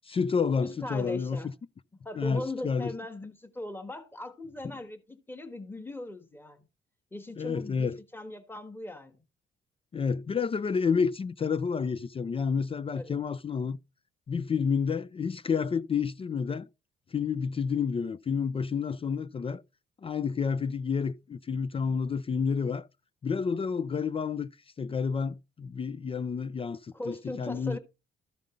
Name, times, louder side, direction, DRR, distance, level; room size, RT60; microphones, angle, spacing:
voice 1, 0.1-1.4 2.2-2.9 7.4-8.0 9.9-13.8 14.3-16.7 17.1-19.6 20.0-22.9 23.2-24.5 24.8-27.8, left 6 dB, 30° left, 0.4 m, -29 dB
voice 2, 0.6-1.5 2.0-6.7 7.1-9.2 13.0-13.2 26.9-27.8, left 1 dB, 10° left, 1.6 m, -39 dB
13.0 x 5.2 x 3.8 m
cardioid pair, 90°, 20 cm